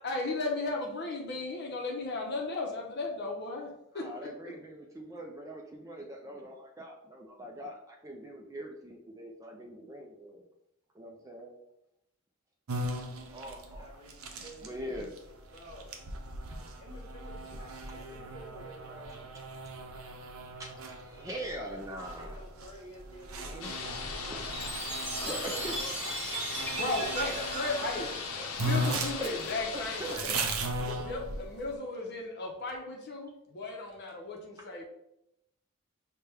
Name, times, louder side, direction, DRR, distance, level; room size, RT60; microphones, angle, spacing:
voice 1, 0.0-4.3 26.7-28.1 28.6-30.4 30.8-34.8, left 2 dB, 50° left, 0 dB, 0.7 m, -35 dB
voice 2, 4.0-10.4 11.0-11.6 13.3-13.8 14.4-15.1 20.6-22.4 23.4-23.8 24.3-24.5 25.3-25.4 25.6-25.7 28.0-28.1 28.4-28.6 28.8-30.2, equal, 15° right, 1 dB, 0.4 m, -43 dB
sound 1, 12.7-25.8 26.5-28.0 28.2-28.3 28.6-31.7, right 1 dB, 80° right, 0.6 m, -38 dB
voice 3, 13.8-15.1 15.5-15.9 16.7-19.3 22.0-24.6 25.2-26.4 27.3-27.8 28.1-28.2, equal, 25° left, -2 dB, 1.3 m, -49 dB
sound 2, 23.6-30.2, left 5 dB, 85° left, 0.6 m, -38 dB
Chime, 24.5-29.1, right 3 dB, 30° right, 1.1 m, -38 dB
5.7 x 2.2 x 3.3 m, 0.82 s
head